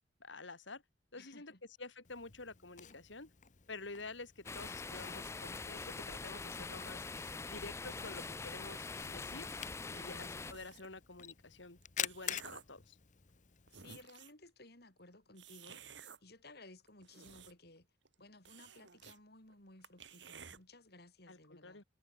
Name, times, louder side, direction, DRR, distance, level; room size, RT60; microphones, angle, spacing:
voice 1, 0.2-0.8 1.1-1.5 1.8-3.3 3.7-7.1 7.5-9.5 9.9-13.0 21.3-21.8, left 3 dB, 80° left, 3.4 m, -49 dB
voice 2, 1.1-1.6 9.9-10.3 13.7-17.9 18.2-21.8, left 2 dB, 55° left, 5.4 m, -58 dB
Camera, 2.0-14.0, left 10 dB, 40° left, 1.0 m, -49 dB
sound 1, 4.5-10.5, left 4 dB, 15° left, 0.3 m, -44 dB
sound 2, 10.3-11.0 11.7-12.8 13.4-13.5 13.7-14.4 15.4-16.2 16.9-17.8 18.1-18.2 18.5-19.2 19.5-19.6 19.8-20.6, right 6 dB, 70° right, 2.9 m, -54 dB
head